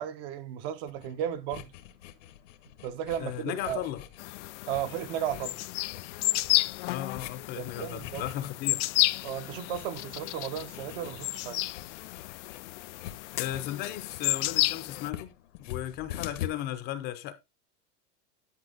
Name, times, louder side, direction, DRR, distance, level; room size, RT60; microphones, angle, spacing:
voice 1, 0.0-1.7 2.8-3.8 4.7-5.6 7.6-8.2 9.2-11.6, right 10 dB, 50° right, 1.1 m, -34 dB
sound 1, 0.9-16.5, left 12 dB, 85° left, 1.6 m, -45 dB
voice 2, 3.2-4.0 6.9-8.8 13.3-15.3 15.6-17.3, left 13 dB, 30° left, 0.7 m, -35 dB
sound 2, 4.2-15.1, left 20 dB, 70° left, 0.5 m, -32 dB
11.0 x 5.5 x 3.9 m
supercardioid pair, 170°, 36 cm